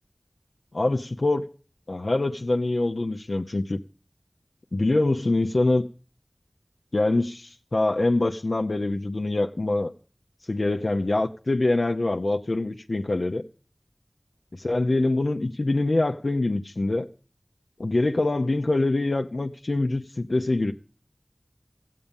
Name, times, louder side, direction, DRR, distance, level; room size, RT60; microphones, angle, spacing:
voice 1, 0.7-1.4 1.9-3.8 4.7-5.9 6.9-9.9 10.5-13.5 14.5-17.1 17.8-20.7, left 2 dB, 70° left, 0.8 m, -24 dB
15.0 x 8.6 x 7.1 m
wide cardioid pair, 45°, 0 cm